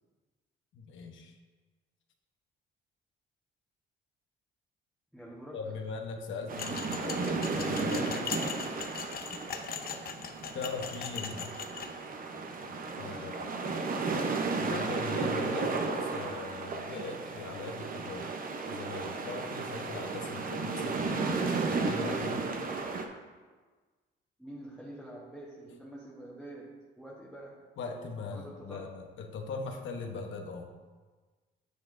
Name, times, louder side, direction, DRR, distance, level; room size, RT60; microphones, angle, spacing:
voice 1, 0.7-1.4 5.5-8.3 10.5-11.6 13.0-13.6 14.6-18.3 18.7-22.5 27.8-30.7, left 4 dB, 75° left, 3 dB, 1.0 m, -40 dB
voice 2, 5.1-5.8 24.4-27.7 28.3-28.9, right 1 dB, ahead, -7 dB, 1.3 m, -47 dB
sound 1, 6.5-23.1, right 4 dB, 45° right, 0.8 m, -34 dB
sound 2, 6.6-11.9, left 7 dB, 50° left, 0.6 m, -40 dB
9.3 x 7.0 x 2.6 m, 1.4 s
cardioid pair, 90°, 20 cm